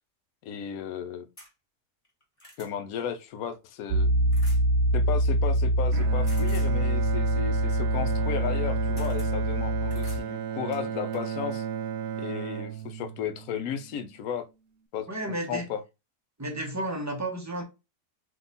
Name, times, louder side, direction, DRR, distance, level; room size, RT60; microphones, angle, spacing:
voice 1, 0.4-1.3 2.6-4.1 4.9-11.7 12.2-14.5 14.9-15.8, left 8 dB, 70° left, 1.0 m, -34 dB
sound 1, 1.4-1.5 2.0-2.7 4.3-4.6 6.3-6.7 8.4-8.6 9.0-9.3 9.9-10.2 10.7-11.3 12.3-12.4 12.8-12.9, equal, 20° left, 1.4 m, -49 dB
Piano, 3.9-10.2, right 1 dB, 90° right, 1.2 m, -25 dB
Bowed string instrument, 5.9-14.1, right 8 dB, 70° right, 0.9 m, -34 dB
voice 2, 15.1-15.7 16.4-17.6, right 1 dB, 15° right, 0.6 m, -32 dB
3.7 x 2.9 x 3.9 m
omnidirectional pair, 1.7 m